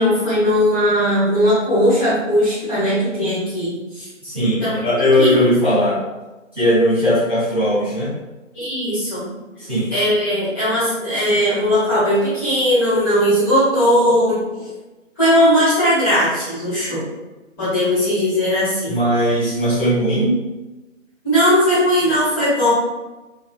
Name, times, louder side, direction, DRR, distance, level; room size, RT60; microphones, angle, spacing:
voice 1, 0.0-4.1 4.6-4.7 5.2-5.3 8.5-9.2 9.9-14.4 15.2-17.1 17.6-18.9 21.2-22.7, equal, 15° left, -11 dB, 1.2 m, -18 dB
voice 2, 4.2-6.0 6.5-8.1 9.6-9.9 18.9-20.4, equal, 10° right, -21 dB, 0.8 m, -18 dB
3.2 x 2.7 x 2.4 m, 1.1 s
figure-of-eight pair, 160°, 39 cm